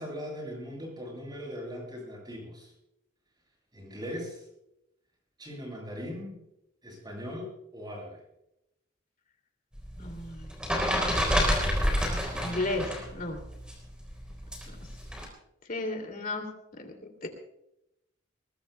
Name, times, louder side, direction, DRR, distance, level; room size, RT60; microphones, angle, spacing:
voice 1, 0.0-2.7 3.7-4.5 5.4-6.4 6.8-8.2, equal, 20° right, -1 dB, 7.8 m, -39 dB
sound 1, 9.8-13.1 13.4-15.3, equal, 5° right, 4.0 m, -28 dB
voice 2, 10.0-10.5 12.4-13.4 14.7-14.8 15.7-16.9 17.2-17.3, left 2 dB, 45° left, 4 dB, 2.8 m, -34 dB
22.0 x 21.0 x 2.3 m, 0.84 s
head